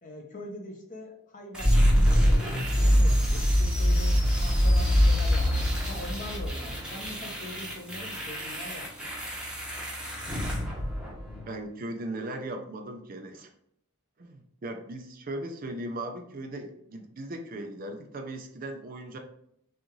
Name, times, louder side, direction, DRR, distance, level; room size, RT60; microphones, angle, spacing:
voice 1, 0.0-9.1, left 1 dB, 35° left, 1 dB, 0.9 m, -42 dB
sound 1, 1.5-11.5, equal, 5° right, 0.9 m, -25 dB
voice 2, 11.5-13.5 14.2-19.2, right 1 dB, 40° right, 5 dB, 0.5 m, -38 dB
6.2 x 2.5 x 3.0 m, 0.72 s
head